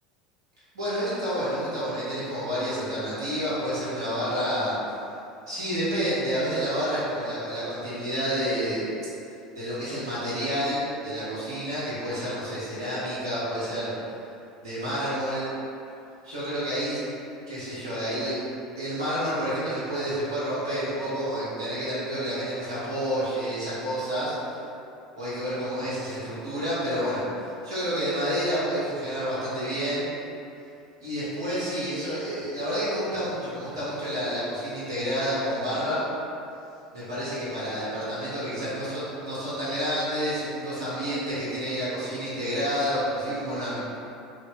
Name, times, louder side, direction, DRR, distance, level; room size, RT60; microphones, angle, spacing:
voice 1, 0.7-4.8 5.5-8.8 9.5-13.9 14.6-15.5 16.2-17.0 17.5-24.3 25.2-27.2 27.6-30.1 31.0-36.0 36.9-43.8, equal, 70° right, -10 dB, 1.0 m, -29 dB
2.9 x 2.5 x 3.7 m, 2.7 s
figure-of-eight pair, 70°, 3 cm